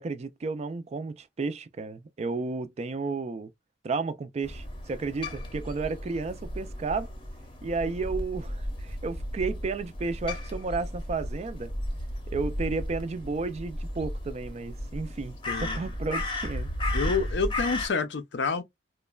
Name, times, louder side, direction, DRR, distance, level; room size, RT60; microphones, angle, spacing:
voice 1, 0.0-3.5 3.8-7.1 7.6-11.7 12.3-16.7, right 4 dB, 35° right, 0.3 m, -32 dB
Crow, 4.4-17.9, left 1 dB, 25° left, 0.7 m, -34 dB
voice 2, 15.5-15.8 16.9-18.6, left 4 dB, 65° left, 0.5 m, -28 dB
3.0 x 2.1 x 2.2 m
head